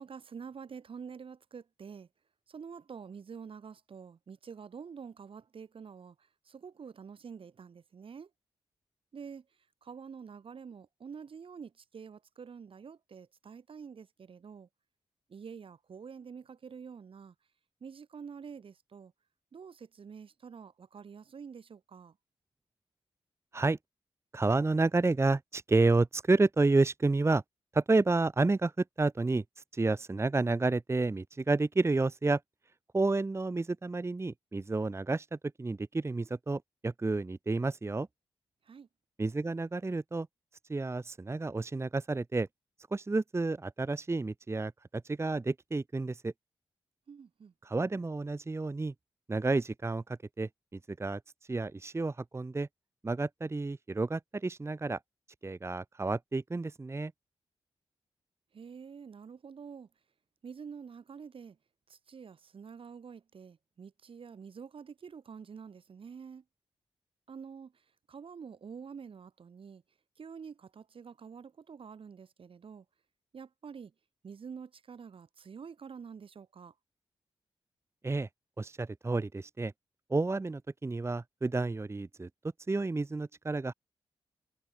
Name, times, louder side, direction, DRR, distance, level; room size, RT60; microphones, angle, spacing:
voice 1, 0.0-2.1 2.5-6.2 6.5-8.3 9.1-9.4 9.8-14.7 15.3-17.3 17.8-19.1 19.5-22.2 38.7-38.9 47.1-47.5 58.5-59.9 60.4-61.6 61.9-66.4 67.3-67.7 68.1-69.8 70.2-72.9 73.3-73.9 74.2-76.7, right 6 dB, 65° right, 2.0 m, -47 dB
voice 2, 24.3-27.4 27.7-28.7 29.0-29.4 29.7-32.4 32.9-38.1 39.2-40.3 40.7-42.5 42.9-46.3 47.6-48.9 49.3-50.5 51.0-51.2 51.5-52.7 53.0-55.0 55.4-57.1 78.0-78.3 78.6-79.7 80.1-82.3 82.7-83.7, right 3 dB, 25° right, 0.8 m, -30 dB
supercardioid pair, 45°, 10 cm